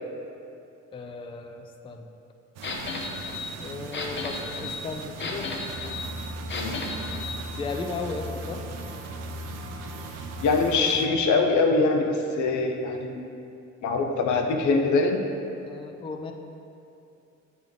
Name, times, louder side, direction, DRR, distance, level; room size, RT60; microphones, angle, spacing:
voice 1, 0.9-2.1 3.6-5.5 7.5-8.6 15.7-16.3, left 4 dB, 20° left, 4 dB, 0.3 m, -35 dB
sound 1, 2.6-7.4, left 3 dB, 40° left, 0.7 m, -34 dB
sound 2, 2.6-11.1, right 5 dB, 60° right, 0.5 m, -41 dB
sound 3, 5.7-10.7, equal, 75° right, 1.1 m, -38 dB
voice 2, 10.4-13.3 13.8-15.2, left 3 dB, 75° left, 3 dB, 0.7 m, -23 dB
7.6 x 3.6 x 3.6 m, 2.7 s
cardioid pair, 90°, 30 cm